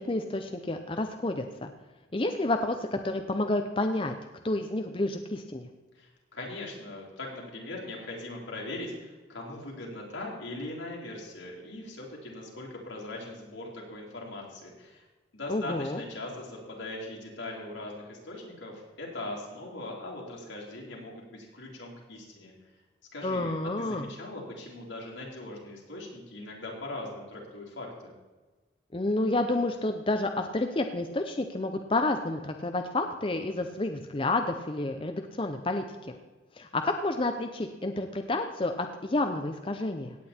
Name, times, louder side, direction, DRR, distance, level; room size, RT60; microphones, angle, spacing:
voice 1, 0.0-1.7 2.1-4.1 4.4-5.7 15.5-16.0 23.2-24.1 28.9-36.1 36.6-40.1, left 2 dB, 30° left, 5 dB, 0.6 m, -30 dB
voice 2, 5.9-15.0 15.3-22.5 23.1-28.1, left 2 dB, 80° left, -2 dB, 3.8 m, -40 dB
17.0 x 8.6 x 4.4 m, 1.2 s
head